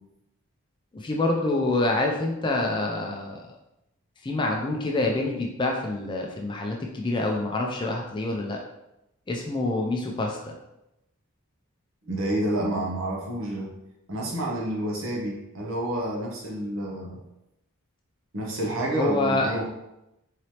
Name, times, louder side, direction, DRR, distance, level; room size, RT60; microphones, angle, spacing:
voice 1, 0.9-3.5 4.2-8.6 9.3-10.5 18.9-19.5, left 2 dB, 20° left, 1 dB, 0.3 m, -26 dB
voice 2, 12.1-13.7 14.1-17.2 18.3-19.7, right 1 dB, 65° right, -1 dB, 0.9 m, -29 dB
3.9 x 3.2 x 2.9 m, 0.88 s
head